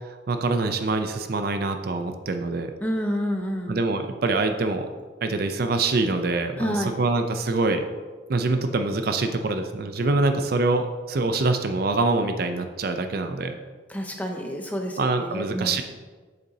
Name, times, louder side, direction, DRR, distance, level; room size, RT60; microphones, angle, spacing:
voice 1, 0.1-2.7 3.7-4.9 5.2-7.8 8.3-13.5 15.0-15.8, right 3 dB, 50° right, 7 dB, 0.5 m, -25 dB
voice 2, 2.8-3.8 6.6-6.9 13.9-15.8, equal, 10° left, 2 dB, 0.6 m, -29 dB
8.2 x 6.8 x 2.7 m, 1.4 s
head